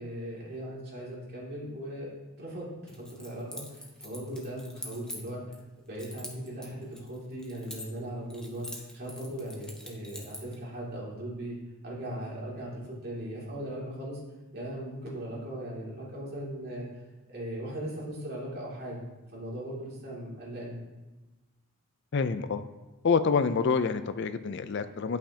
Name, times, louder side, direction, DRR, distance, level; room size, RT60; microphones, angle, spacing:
voice 1, 0.0-2.1 2.4-5.4 5.9-11.6 11.8-14.2 14.5-16.8 17.3-19.0 19.3-20.8, right 1 dB, 45° right, -6 dB, 2.4 m, -38 dB
Keys jangling, 2.9-5.6 6.0-8.1 8.3-10.6, left 1 dB, 5° left, 0.7 m, -44 dB
voice 2, 22.1-22.6 23.0-25.2, left 5 dB, 50° left, 11 dB, 0.4 m, -27 dB
10.5 x 5.8 x 2.8 m, 1.1 s
head